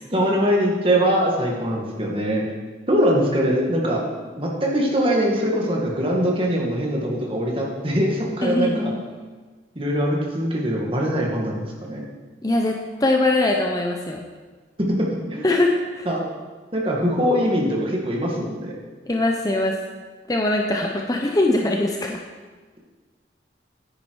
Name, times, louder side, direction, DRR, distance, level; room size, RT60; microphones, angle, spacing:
voice 1, 0.1-2.4 2.9-4.0 4.4-8.9 9.8-12.0 15.0-15.5 16.1-16.2 16.7-18.8, equal, 30° right, -2 dB, 1.9 m, -22 dB
voice 2, 8.4-9.0 12.4-14.2 15.4-16.1 19.1-19.8 20.3-22.2, left 2 dB, 20° left, 1 dB, 0.7 m, -22 dB
10.0 x 9.8 x 4.7 m, 1.4 s
head